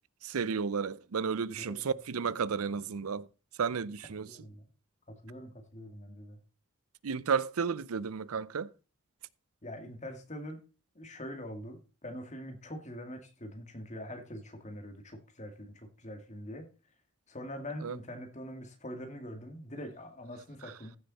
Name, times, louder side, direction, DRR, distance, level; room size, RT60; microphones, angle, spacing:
voice 1, 0.2-3.3 3.6-4.3 7.0-8.7 17.8-18.0, right 6 dB, 85° right, 0.6 m, -32 dB
voice 2, 1.5-1.8 4.3-4.7 5.1-6.4 9.6-10.6 10.9-16.7 17.3-21.0, equal, 30° left, 2.2 m, -44 dB
15.0 x 6.9 x 4.2 m
head